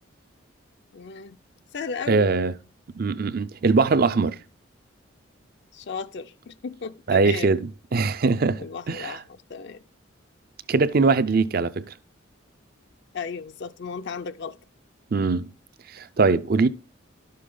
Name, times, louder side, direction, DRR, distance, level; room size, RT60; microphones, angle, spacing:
voice 1, 0.9-1.4 1.7-2.3 5.7-7.6 8.0-8.1 8.6-9.8 13.1-14.6, left 5 dB, 55° left, 0.4 m, -35 dB
voice 2, 2.1-2.5 3.0-4.4 7.1-9.2 10.7-11.9 15.1-15.5 15.9-16.7, right 4 dB, 50° right, 0.5 m, -22 dB
11.5 x 6.7 x 3.8 m
head